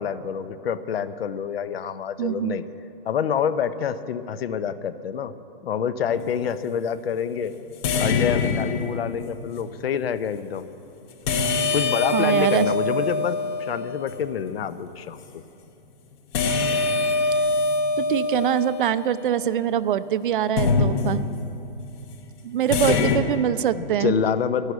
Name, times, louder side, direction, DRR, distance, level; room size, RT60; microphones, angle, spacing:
voice 1, 0.0-2.6 3.0-5.3 5.6-7.5 8.0-10.7 11.7-15.4 22.9-23.2 23.7-24.7, left 8 dB, 75° left, 14 dB, 0.8 m, -27 dB
voice 2, 2.2-2.6 12.1-12.7 18.0-21.3 22.4-24.1, right 10 dB, 60° right, 15 dB, 0.5 m, -24 dB
sound 1, 6.1-6.4 7.8-9.3 11.3-14.3 16.3-19.7 20.6-21.6 22.7-23.2, left 3 dB, 25° left, 0.8 m, -24 dB
12.5 x 11.5 x 8.1 m, 2.8 s
hypercardioid pair, 170°, 30 cm